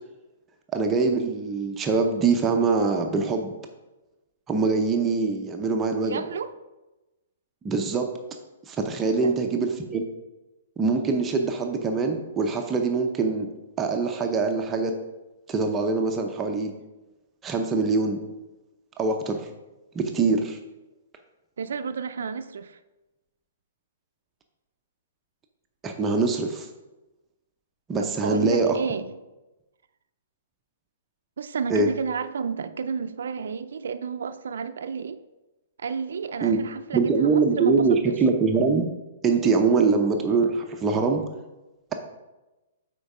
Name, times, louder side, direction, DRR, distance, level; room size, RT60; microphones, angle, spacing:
voice 1, 0.7-3.5 4.5-6.2 7.6-8.1 8.7-10.0 10.8-13.5 13.8-14.9 15.5-16.7 17.4-18.2 19.0-19.5 19.9-20.6 25.8-26.7 27.9-28.8 31.7-31.9 36.4-36.6 36.9-38.9 39.2-41.2, right 4 dB, 15° right, 3 dB, 0.6 m, -23 dB
voice 2, 6.0-6.5 9.0-9.3 21.6-22.8 28.0-29.2 31.4-35.2 35.8-38.2, right 6 dB, 80° right, 10 dB, 0.4 m, -31 dB
7.7 x 4.5 x 4.9 m, 1.1 s
hypercardioid pair, 150°, 0 cm